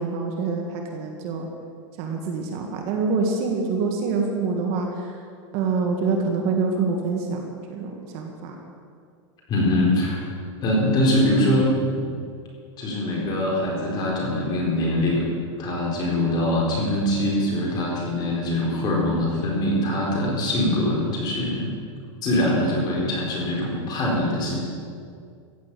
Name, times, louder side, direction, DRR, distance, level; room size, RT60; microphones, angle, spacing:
voice 1, 0.0-1.4 2.0-4.9 5.5-7.4 7.7-8.5, right 4 dB, 40° right, 2 dB, 1.9 m, -25 dB
voice 2, 9.5-10.2 10.6-12.1 12.8-15.3 15.6-21.7 22.2-24.6, left 1 dB, 25° left, -3 dB, 4.4 m, -23 dB
15.5 x 8.4 x 8.5 m, 2.3 s
supercardioid pair, 155°, 16 cm